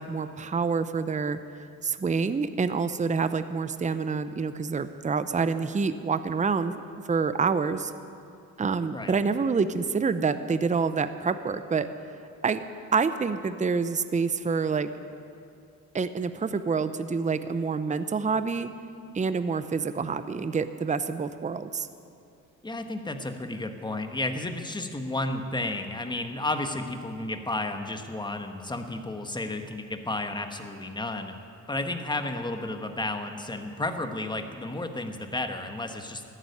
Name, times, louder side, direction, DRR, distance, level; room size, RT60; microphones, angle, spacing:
voice 1, 0.0-1.4 1.8-7.9 8.6-11.9 12.4-12.6 12.9-14.9 15.9-18.7 19.1-21.9, right 5 dB, 25° right, 11 dB, 0.7 m, -27 dB
voice 2, 22.6-31.3 31.7-36.2, left 2 dB, 15° left, 6 dB, 1.4 m, -32 dB
14.0 x 9.9 x 9.4 m, 2.5 s
cardioid pair, 85°, 32 cm